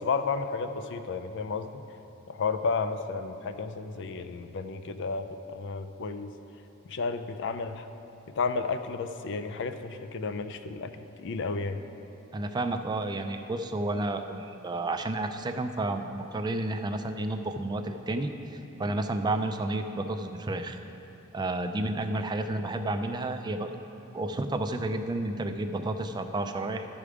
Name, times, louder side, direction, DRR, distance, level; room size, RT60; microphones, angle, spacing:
voice 1, 0.0-1.8 2.3-6.3 6.9-7.9 8.4-11.8, left 4 dB, 55° left, 9 dB, 0.4 m, -32 dB
voice 2, 12.3-20.8 21.3-23.7 24.1-26.9, right 2 dB, 20° right, 6 dB, 0.4 m, -31 dB
13.5 x 5.0 x 4.9 m, 3.0 s
head